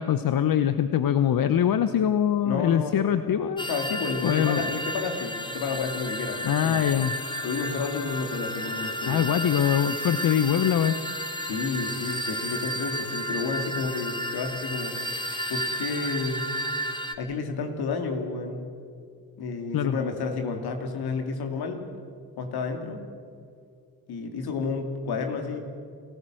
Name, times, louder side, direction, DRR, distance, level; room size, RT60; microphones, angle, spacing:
voice 1, 0.0-3.7 4.2-4.7 6.4-7.1 9.1-11.0 19.7-20.0, left 9 dB, 65° left, 12 dB, 0.9 m, -23 dB
voice 2, 2.4-3.1 3.7-6.8 7.4-9.3 11.4-14.9 15.5-16.5 17.2-18.7 19.4-21.8 22.4-23.0 24.1-25.6, left 4 dB, 80° left, 5 dB, 2.7 m, -31 dB
sound 1, 3.6-17.1, equal, 10° left, 2.3 m, -32 dB
28.5 x 15.0 x 7.7 m, 2.3 s
supercardioid pair, 50°, 37 cm